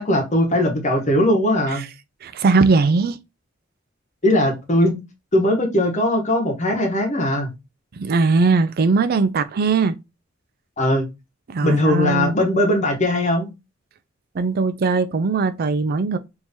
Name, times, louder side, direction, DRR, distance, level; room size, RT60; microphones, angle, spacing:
voice 1, 0.0-1.8 4.2-5.0 5.3-7.5 10.8-11.0 11.6-13.5, left 1 dB, 35° left, 1.2 m, -19 dB
voice 2, 2.2-3.2 7.9-9.9 11.5-12.4 14.3-16.2, right 4 dB, 50° right, 0.4 m, -19 dB
3.7 x 3.0 x 2.7 m
head